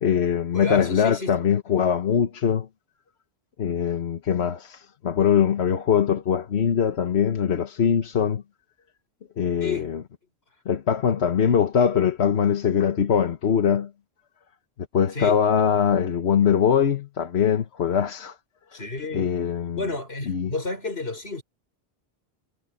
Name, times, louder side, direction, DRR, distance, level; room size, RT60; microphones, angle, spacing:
voice 1, 0.0-2.7 3.6-8.4 9.4-10.0 10.7-13.9 14.9-18.3 19.1-19.8 20.3-20.5, left 8 dB, 90° left, 1.4 m, -22 dB
voice 2, 0.5-1.3 9.6-9.9 15.1-15.4 18.7-19.3 19.7-21.4, left 3 dB, 75° left, 4.7 m, -31 dB
omnidirectional pair, 1.1 m